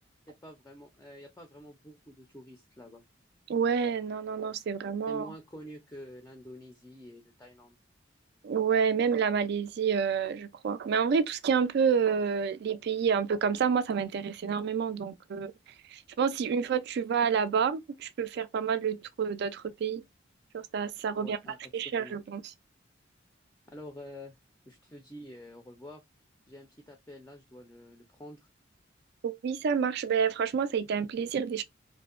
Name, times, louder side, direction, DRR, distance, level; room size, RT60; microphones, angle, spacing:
voice 1, 0.3-3.0 5.1-7.8 21.2-22.2 23.7-24.3 24.7-26.0 26.5-28.5, equal, 15° left, 0.4 m, -47 dB
voice 2, 3.5-5.3 8.4-15.5 15.9-20.0 20.5-21.4 21.7-22.4 29.2-31.6, right 6 dB, 60° right, 0.3 m, -28 dB
2.6 x 2.1 x 2.4 m
head